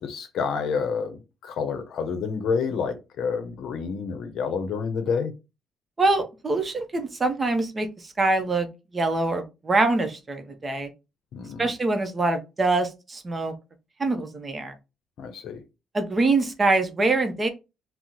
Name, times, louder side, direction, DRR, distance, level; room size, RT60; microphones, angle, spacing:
voice 1, 0.0-5.3 11.3-11.7 15.2-15.6, left 5 dB, 75° left, 0.6 m, -29 dB
voice 2, 6.0-8.7 8.9-10.9 11.6-13.5 14.0-14.7 15.9-17.5, right 2 dB, 30° right, 0.6 m, -24 dB
2.8 x 2.0 x 3.7 m
cardioid pair, 90°, 0 cm